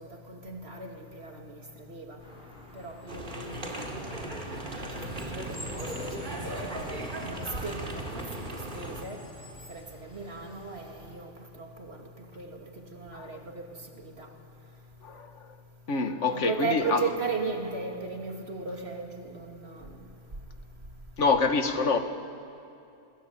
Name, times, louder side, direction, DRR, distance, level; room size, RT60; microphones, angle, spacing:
voice 1, 0.0-1.6 1.9-2.2 2.7-5.0 5.3-6.7 7.2-9.2 9.7-13.7 14.0-14.3 16.3-20.0, right 4 dB, 60° right, 2.8 m, -37 dB
sound 1, 2.2-11.1, equal, 45° left, 4.9 m, -48 dB
sound 2, 3.1-9.0, right 1 dB, 40° right, 2.7 m, -37 dB
voice 2, 13.1-13.4 15.0-15.5 15.9-17.1 21.2-22.0, left 4 dB, 75° left, 1.8 m, -26 dB
27.5 x 21.5 x 8.5 m
omnidirectional pair, 1.2 m